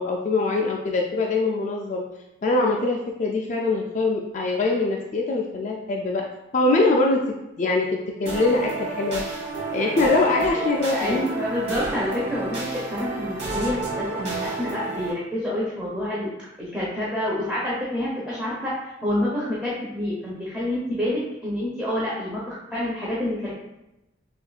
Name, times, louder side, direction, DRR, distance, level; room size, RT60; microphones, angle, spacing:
voice 1, 0.0-2.0 2.4-6.2 6.5-7.2 7.6-9.2 9.7-11.2, left 3 dB, 40° left, 0 dB, 0.3 m, -23 dB
sound 1, 8.3-15.1, right 3 dB, 35° right, 1.3 m, -30 dB
voice 2, 10.6-16.3 16.6-18.7 19.0-23.5, left 1 dB, 5° right, -8 dB, 0.8 m, -28 dB
6.4 x 2.4 x 2.3 m, 0.91 s
head